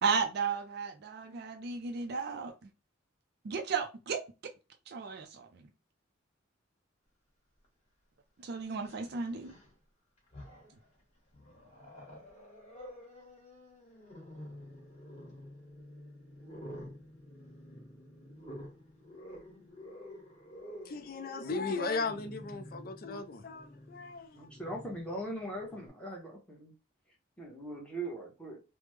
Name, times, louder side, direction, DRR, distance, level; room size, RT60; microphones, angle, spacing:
voice 1, 0.0-2.5 3.4-4.2 4.9-5.5 8.4-9.5, right 5 dB, 50° right, 0.4 m, -34 dB
Growling, 7.6-7.7 8.7-9.7 10.2-10.9 11.3-25.9, left 1 dB, 30° left, 1.3 m, -50 dB
voice 2, 20.9-24.5, left 3 dB, 45° left, 0.4 m, -36 dB
voice 3, 24.3-26.7 27.4-28.6, right 1 dB, 5° left, 0.8 m, -40 dB
3.3 x 2.1 x 3.1 m
head